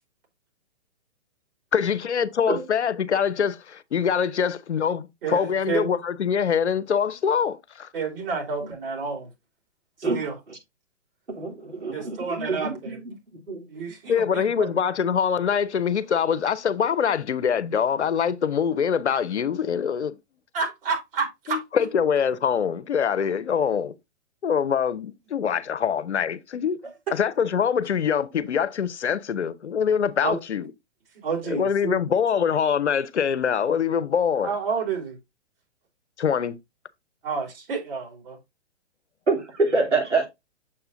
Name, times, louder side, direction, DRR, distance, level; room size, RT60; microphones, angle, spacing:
voice 1, 1.7-7.9 14.1-20.2 21.5-24.0 24.4-26.8 27.1-30.7 31.5-34.5 36.2-36.6, left 7 dB, 75° left, 0.8 m, -24 dB
voice 2, 5.2-5.9 7.9-9.3 10.1-10.4 11.9-13.0 13.7-14.7 20.5-21.6 30.2-30.4 31.2-32.0 34.4-35.2 37.2-38.4, right 5 dB, 55° right, 3.3 m, -29 dB
voice 3, 11.3-13.0 13.5-13.6 39.3-40.3, right 3 dB, 90° right, 3.1 m, -25 dB
7.1 x 6.8 x 2.6 m
figure-of-eight pair, 120°, 35 cm